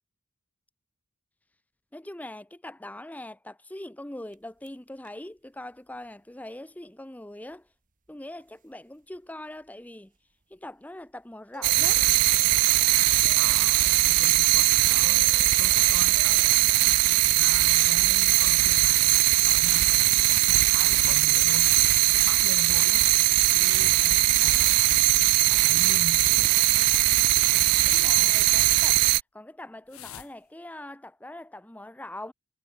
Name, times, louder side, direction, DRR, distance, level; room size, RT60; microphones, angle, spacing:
voice 1, 1.9-7.7 8.1-10.1 10.5-12.0 27.9-29.1 29.3-32.3, left 1 dB, 5° left, 0.7 m, -42 dB
sound 1, 4.3-4.8 5.0-5.1 5.4-5.5 5.7-6.1 7.3-7.7 8.0-21.3, right 3 dB, 35° right, 1.8 m, -55 dB
sound 2, 11.6-29.2, right 20 dB, 85° right, 0.4 m, -20 dB
voice 2, 13.3-15.3 15.6-17.1 17.4-21.8 22.2-23.1 23.5-25.0 25.5-26.6, right 2 dB, 70° right, 4.7 m, -42 dB
sound 3, 21.0-23.1 23.4-25.2 25.4-25.5 26.6-27.7 28.2-28.4 29.9-30.3, left 11 dB, 65° left, 1.0 m, -46 dB
head